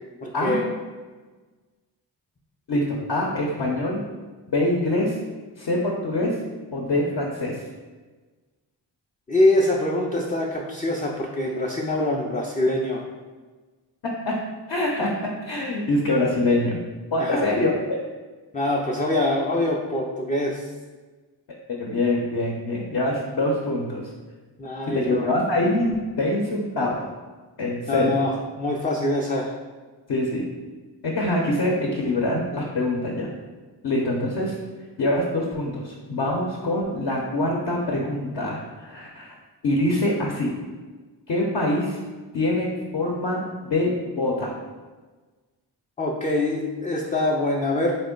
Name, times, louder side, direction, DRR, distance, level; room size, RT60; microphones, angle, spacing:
voice 1, 0.2-0.7 9.3-13.0 17.2-17.5 18.5-20.7 24.6-25.3 27.9-29.5 46.0-48.0, left 1 dB, 20° left, -1 dB, 0.3 m, -24 dB
voice 2, 2.7-4.0 4.5-5.2 5.6-6.4 6.7-7.6 14.3-14.4 14.7-15.1 15.4-16.8 17.1-18.0 21.8-24.1 24.9-27.1 27.6-28.2 30.1-30.4 31.2-33.3 33.8-34.5 35.0-39.3 39.6-40.5 41.3-42.0 42.3-44.5, left 1 dB, 60° left, -2 dB, 0.7 m, -24 dB
3.5 x 2.0 x 3.7 m, 1.3 s
cardioid pair, 60°, 43 cm